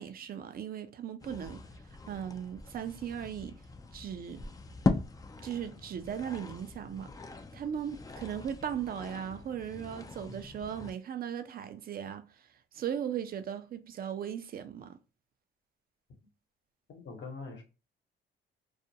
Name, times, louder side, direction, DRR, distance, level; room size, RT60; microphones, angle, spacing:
voice 1, 0.0-1.6 2.1-3.6 3.9-4.4 5.4-7.1 7.5-12.3 12.7-15.0, right 9 dB, 50° right, 0.5 m, -37 dB
sound 1, 1.2-10.9, left 3 dB, 20° left, 0.3 m, -39 dB
voice 2, 16.9-17.6, left 4 dB, 70° left, 0.9 m, -43 dB
2.4 x 2.1 x 2.6 m
cardioid pair, 90°, 20 cm